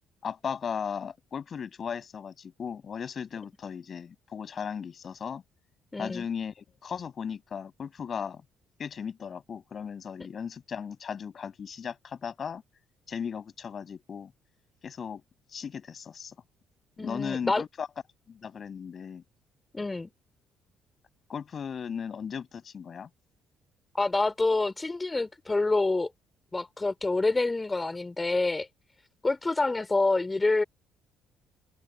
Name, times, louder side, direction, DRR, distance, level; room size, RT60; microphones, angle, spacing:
voice 1, 0.2-5.4 6.0-8.4 8.8-12.6 13.1-14.3 14.8-15.2 15.5-16.3 17.0-17.9 18.3-19.2 21.3-23.1, left 7 dB, 45° left, 6.2 m, -36 dB
voice 2, 5.9-6.2 17.0-17.6 19.7-20.1 23.9-26.1 26.5-28.7 29.2-30.6, left 3 dB, 20° left, 3.1 m, -27 dB
hypercardioid pair, 50°, 0 cm